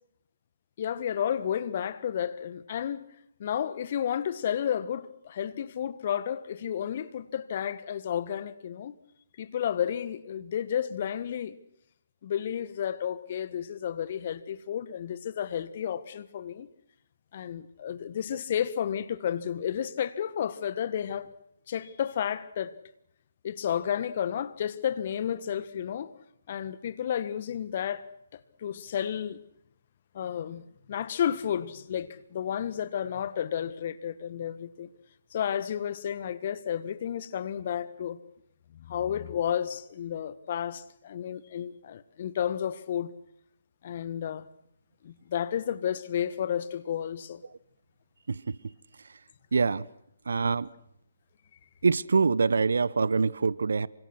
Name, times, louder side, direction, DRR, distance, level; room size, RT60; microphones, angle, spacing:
voice 1, 0.8-3.0 3.4-8.9 9.4-11.5 12.2-16.7 17.3-21.3 21.7-22.7 23.4-26.1 26.5-28.0 28.6-29.4 30.1-30.6 30.9-34.9 35.3-38.2 38.7-43.1 43.8-44.4 45.0-47.4, left 9 dB, 40° left, 1.6 m, -32 dB
voice 2, 49.5-49.9 50.3-50.7 51.8-53.9, right 4 dB, 65° right, 1.0 m, -25 dB
28.0 x 25.5 x 6.3 m
figure-of-eight pair, 140°, 0 cm